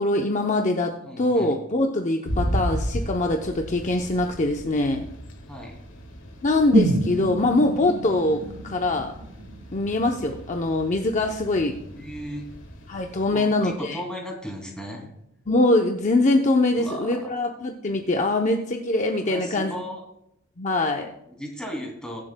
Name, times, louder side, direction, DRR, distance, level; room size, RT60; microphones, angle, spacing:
voice 1, 0.0-5.1 6.4-9.1 9.7-11.7 12.9-14.0 15.5-19.7 20.6-21.1, left 2 dB, 35° left, 2 dB, 0.7 m, -23 dB
voice 2, 1.0-1.5 5.5-5.7 11.9-12.5 13.3-15.1 16.8-17.3 19.2-20.0 21.3-22.2, equal, 5° left, 0 dB, 2.5 m, -36 dB
sound 1, 2.3-13.3, equal, 65° left, 1.6 m, -35 dB
sound 2, 6.7-10.7 11.0-11.1, right 1 dB, 65° right, 1.1 m, -27 dB
22.0 x 7.6 x 2.2 m, 0.79 s
head